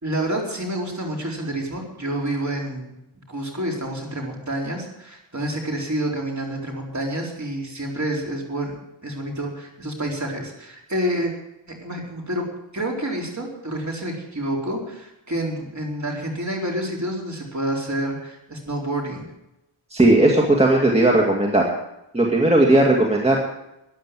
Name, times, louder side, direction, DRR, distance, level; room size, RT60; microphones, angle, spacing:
voice 1, 0.0-3.0 3.3-8.8 9.0-11.3 11.7-12.5 12.7-19.3, right 1 dB, 35° right, -1 dB, 4.1 m, -28 dB
voice 2, 19.9-21.7 22.1-23.4, right 1 dB, 15° right, -1 dB, 2.2 m, -17 dB
14.0 x 10.0 x 7.6 m, 0.87 s
wide cardioid pair, 95°, 48 cm